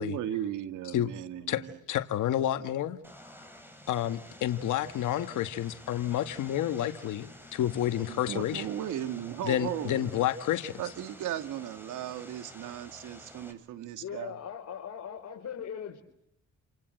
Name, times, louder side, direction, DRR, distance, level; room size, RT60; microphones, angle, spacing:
voice 1, 0.0-1.8 8.1-10.3 10.8-14.4, right 11 dB, 85° right, 2.2 m, -36 dB
voice 2, 1.5-3.0 3.9-8.7 9.4-10.7, left 12 dB, 80° left, 1.6 m, -30 dB
Vehicle, 3.0-13.5, left 1 dB, 5° right, 7.2 m, -50 dB
voice 3, 14.0-16.0, left 8 dB, 60° left, 4.2 m, -39 dB
29.5 x 25.5 x 7.8 m
cardioid pair, 90°, 30 cm